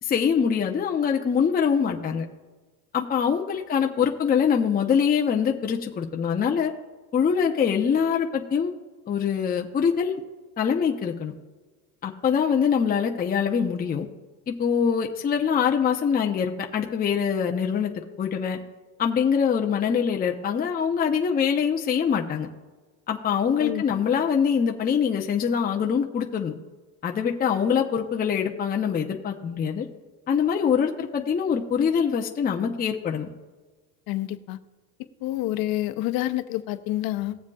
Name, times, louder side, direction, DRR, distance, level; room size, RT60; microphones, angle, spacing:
voice 1, 0.0-2.2 2.9-6.7 7.1-8.7 9.1-10.2 10.6-11.3 12.0-14.1 14.5-17.9 18.2-18.6 19.0-22.5 23.1-26.6 27.0-29.9 30.3-33.3, left 7 dB, 20° left, 2 dB, 0.7 m, -24 dB
voice 2, 34.1-34.6 35.2-37.4, left 15 dB, 55° left, 11 dB, 0.8 m, -28 dB
18.5 x 7.3 x 2.4 m, 1.3 s
supercardioid pair, 125°, 45 cm